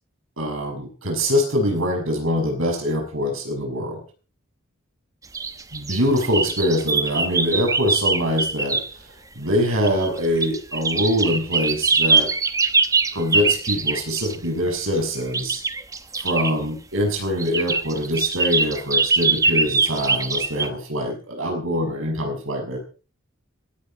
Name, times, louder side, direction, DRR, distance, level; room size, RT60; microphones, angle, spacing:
voice 1, 0.4-4.0 5.7-9.1 9.3-12.3 13.1-15.6 16.2-22.8, equal, 85° right, 2 dB, 6.2 m, -24 dB
sound 1, 5.3-8.9 9.6-14.4 15.3-16.5 17.4-20.7, right 4 dB, 15° right, 0.9 m, -22 dB
17.0 x 16.0 x 4.4 m, 0.37 s
head